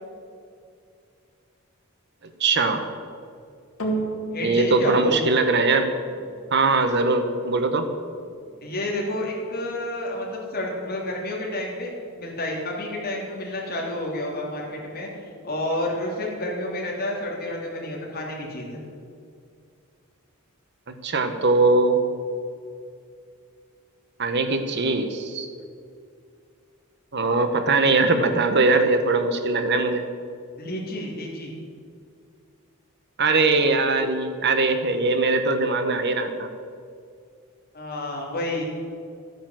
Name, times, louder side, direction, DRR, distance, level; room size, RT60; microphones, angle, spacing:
voice 1, 2.4-2.8 4.4-5.9 6.5-7.9 21.0-22.0 24.2-25.5 27.1-30.0 33.2-36.5, right 3 dB, 50° right, 7 dB, 1.1 m, -21 dB
sound 1, 3.8-12.4 13.1-13.2, right 2 dB, 70° left, 2.7 m, -37 dB
voice 2, 4.3-5.2 8.6-15.1 15.4-18.8 30.6-31.5 37.7-38.6, left 1 dB, 45° left, -2 dB, 3.4 m, -30 dB
13.5 x 9.3 x 7.5 m, 2.3 s
head